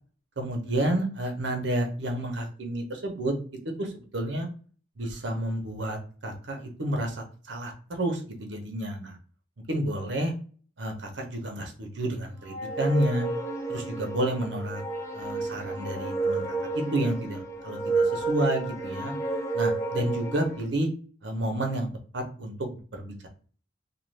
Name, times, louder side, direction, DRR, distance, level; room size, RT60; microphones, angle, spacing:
voice 1, 0.4-3.3 3.6-4.5 5.0-9.2 9.7-10.3 10.8-13.3 13.7-14.8 15.1-16.4 16.7-19.1 19.5-20.9 21.2-21.9 22.1-23.3, right 1 dB, 75° right, 3 dB, 0.8 m, -30 dB
sound 1, 12.5-20.6, right 3 dB, 15° left, 0.8 m, -30 dB
2.5 x 2.2 x 3.2 m, 0.42 s
head